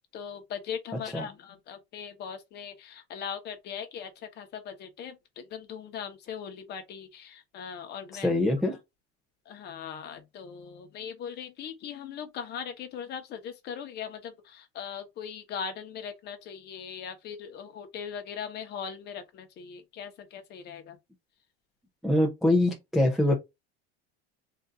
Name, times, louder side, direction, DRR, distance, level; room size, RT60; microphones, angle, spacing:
voice 1, 0.1-8.3 9.5-21.0, left 7 dB, 30° left, 1.0 m, -40 dB
voice 2, 8.1-8.8 22.0-23.3, left 1 dB, ahead, 0.4 m, -24 dB
3.9 x 2.6 x 3.4 m
cardioid pair, 160°, 31 cm